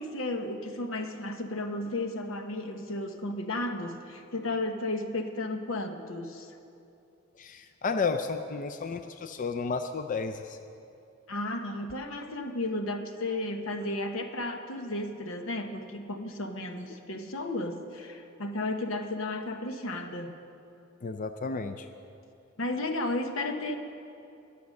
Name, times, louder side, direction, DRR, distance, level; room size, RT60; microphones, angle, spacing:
voice 1, 0.0-6.5 11.3-20.3 22.6-23.8, left 2 dB, 85° left, 6 dB, 1.1 m, -33 dB
voice 2, 7.4-10.6 21.0-21.9, left 4 dB, 40° left, 7 dB, 0.4 m, -32 dB
20.5 x 7.0 x 6.4 m, 2.7 s
head